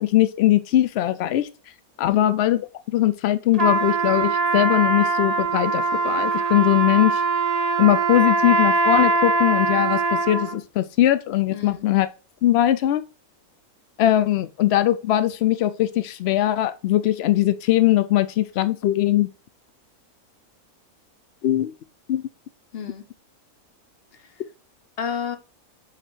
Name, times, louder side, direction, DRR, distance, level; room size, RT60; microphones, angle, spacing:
voice 1, 0.0-1.5 2.0-2.6 2.9-7.2 7.8-12.1 12.4-13.0 14.0-19.3 21.4-21.7 22.1-22.2, left 13 dB, 75° left, 0.6 m, -20 dB
Trumpet, 3.5-10.6, right 3 dB, 30° right, 0.9 m, -22 dB
voice 2, 11.5-11.9 22.7-23.0 24.1-24.4 25.0-25.4, left 7 dB, 45° left, 1.1 m, -32 dB
5.8 x 5.1 x 4.4 m
omnidirectional pair, 1.6 m